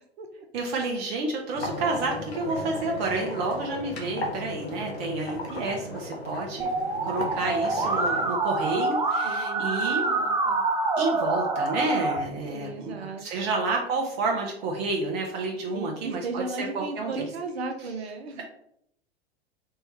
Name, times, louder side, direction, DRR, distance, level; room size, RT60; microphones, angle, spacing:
voice 1, 0.0-0.4 9.2-10.6 12.5-13.5 15.7-18.4, right 3 dB, 75° right, 5 dB, 0.8 m, -36 dB
voice 2, 0.5-6.7 7.0-10.0 11.0-17.2, right 3 dB, 50° right, 0 dB, 1.0 m, -30 dB
sound 1, 1.5-8.4, left 1 dB, 75° left, 1.2 m, -35 dB
Musical instrument, 6.6-12.2, right 3 dB, 10° right, 0.7 m, -26 dB
4.6 x 3.1 x 3.2 m, 0.73 s
figure-of-eight pair, 90°, 32 cm